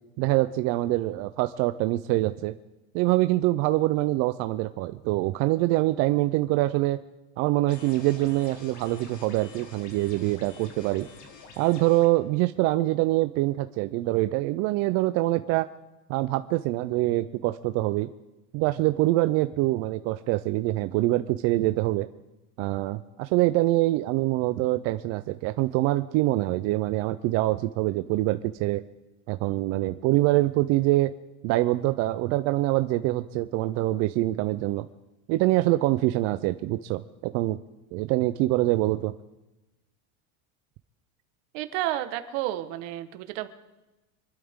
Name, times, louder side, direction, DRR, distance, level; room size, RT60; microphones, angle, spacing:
voice 1, 0.2-2.5 2.9-7.0 7.4-11.1 11.6-15.7 16.1-18.1 18.5-22.1 22.6-28.8 29.3-31.1 31.4-34.9 35.3-37.6 37.9-39.1, right 17 dB, 40° right, 11 dB, 0.4 m, -25 dB
sound 1, 7.7-12.1, left 4 dB, 45° left, 2.4 m, -48 dB
voice 2, 41.5-43.5, right 14 dB, 55° right, 10 dB, 1.3 m, -31 dB
27.0 x 12.5 x 3.6 m, 1.0 s
supercardioid pair, 155°, 42 cm